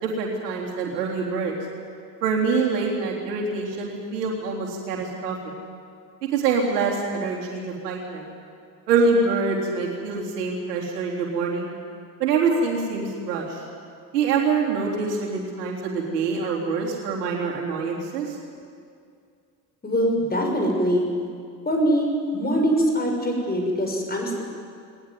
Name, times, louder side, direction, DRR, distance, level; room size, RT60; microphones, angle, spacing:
voice 1, 0.0-1.5 2.2-5.4 6.3-8.3 8.9-11.7 12.2-13.6 14.1-18.4, right 4 dB, 65° right, -2 dB, 3.9 m, -25 dB
voice 2, 19.8-21.1 21.7-24.4, equal, 20° left, 1 dB, 6.1 m, -23 dB
20.0 x 20.0 x 9.4 m, 2.3 s
figure-of-eight pair, 60°, 50 cm